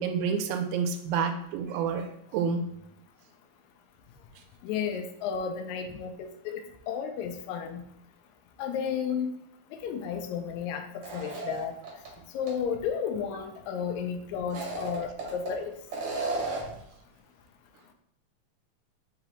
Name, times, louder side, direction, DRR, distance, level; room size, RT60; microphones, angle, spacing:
voice 1, 0.0-2.1 2.3-2.7, right 6 dB, 85° right, 6 dB, 2.0 m, -28 dB
voice 2, 4.6-7.8 8.6-9.3 9.7-11.7 12.3-15.7, left 7 dB, 80° left, 6 dB, 1.9 m, -33 dB
sound 1, 11.0-12.1 12.5-12.6 14.4-15.5 15.9-16.8, right 3 dB, 65° right, 1.1 m, -34 dB
5.6 x 2.9 x 3.0 m, 0.76 s
omnidirectional pair, 3.5 m